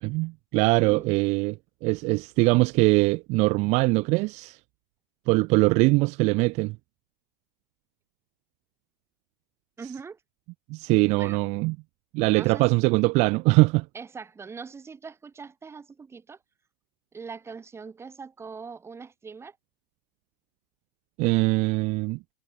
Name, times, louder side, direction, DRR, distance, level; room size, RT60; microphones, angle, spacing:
voice 1, 0.0-1.6 1.8-4.6 5.3-6.8 10.7-11.8 12.1-13.9 21.2-22.2, right 25 dB, 50° right, 1.2 m, -22 dB
voice 2, 9.8-10.2 11.2-11.4 12.3-12.7 13.9-16.4 17.1-19.6, right 5 dB, 20° right, 5.5 m, -41 dB
hypercardioid pair, 110°, 14 cm